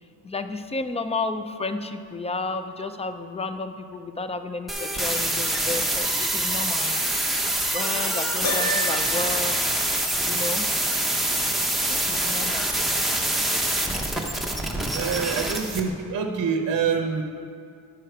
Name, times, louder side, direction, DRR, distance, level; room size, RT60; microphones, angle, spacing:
voice 1, 0.2-7.5 7.7-9.6 10.2-10.7 11.9-12.7, left 3 dB, 15° left, 9 dB, 0.4 m, -32 dB
sound 1, 4.7-15.8, right 1 dB, ahead, 0.8 m, -25 dB
Piano, 8.4-9.3, right 1 dB, 35° left, 1.3 m, -27 dB
voice 2, 14.9-17.2, right 6 dB, 45° right, 3 dB, 0.8 m, -26 dB
11.0 x 6.4 x 4.5 m, 2.4 s
cardioid pair, 105°, 46 cm